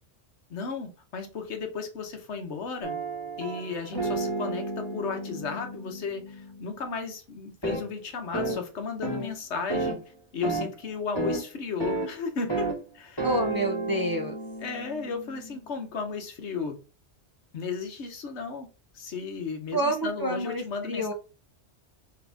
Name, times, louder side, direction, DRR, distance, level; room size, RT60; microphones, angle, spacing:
voice 1, 0.5-3.0 3.4-10.0 10.3-13.3 14.6-16.8 17.5-18.7 18.9-21.1, left 5 dB, 80° left, 1.2 m, -34 dB
sound 1, 2.8-6.8 7.6-7.8 8.3-8.6 9.0-9.3 9.7-10.0 10.4-10.7 11.2-11.4 11.8-12.1 12.5-12.8 13.2-15.6, right 2 dB, 20° left, 1.2 m, -32 dB
voice 2, 13.2-14.4 19.7-21.1, right 1 dB, 25° right, 0.6 m, -28 dB
3.8 x 2.9 x 3.4 m
omnidirectional pair, 1.2 m